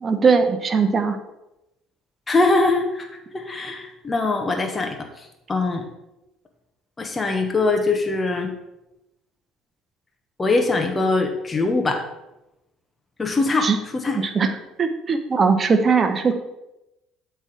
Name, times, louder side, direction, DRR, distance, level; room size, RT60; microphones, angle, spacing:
voice 1, 0.0-1.2 13.6-13.8 14.1-14.5 14.8-16.3, right 5 dB, 35° right, 8 dB, 0.9 m, -19 dB
voice 2, 2.3-3.1 3.3-5.9 7.0-8.5 10.4-12.0 13.2-14.2, left 3 dB, 25° left, 3 dB, 1.1 m, -22 dB
8.2 x 3.5 x 6.1 m, 0.93 s
hypercardioid pair, 60°, 0 cm